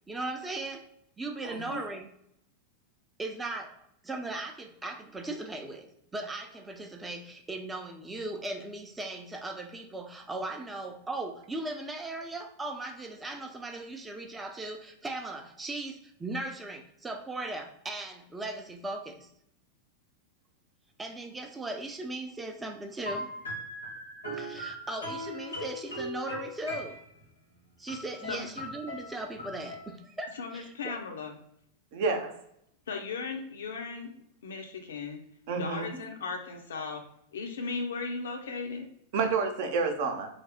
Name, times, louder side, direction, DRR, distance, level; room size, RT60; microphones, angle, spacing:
voice 1, 0.1-0.9 1.2-2.1 3.2-19.3 21.0-23.3 24.3-27.0 27.8-30.9, right 2 dB, 10° right, 5 dB, 0.6 m, -38 dB
voice 2, 1.4-1.8 31.9-32.3 35.5-35.8 39.1-40.3, right 4 dB, 50° right, 4 dB, 0.7 m, -29 dB
sound 1, 23.0-27.2 27.9-30.0, equal, 80° left, 1.1 m, -39 dB
voice 3, 30.3-31.4 32.9-34.1 34.4-35.2 35.5-37.0 37.3-38.9, left 4 dB, 65° left, 4 dB, 0.6 m, -36 dB
3.3 x 2.1 x 3.9 m, 0.73 s
figure-of-eight pair, 90°, 0 cm